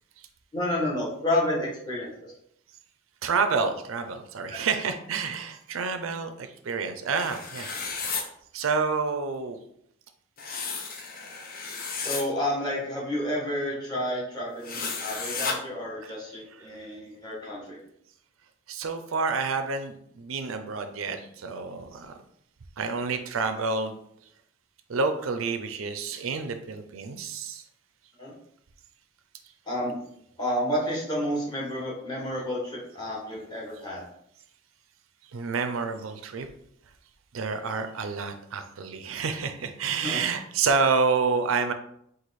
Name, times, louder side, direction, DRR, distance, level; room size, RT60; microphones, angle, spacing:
voice 1, 0.5-2.1 4.5-4.6 12.0-17.8 28.2-28.3 29.7-30.0 30.4-34.0 40.0-40.2, left 1 dB, 20° left, -5 dB, 1.5 m, -30 dB
voice 2, 3.2-7.7 8.5-9.6 16.0-16.1 18.7-22.1 22.8-24.0 24.9-27.6 35.3-36.5 37.3-41.7, right 4 dB, 75° right, 8 dB, 0.5 m, -28 dB
sound 1, 7.1-8.2 10.4-12.2 14.6-15.5, left 5 dB, 45° left, 0.6 m, -33 dB
4.6 x 2.5 x 4.1 m, 0.71 s
head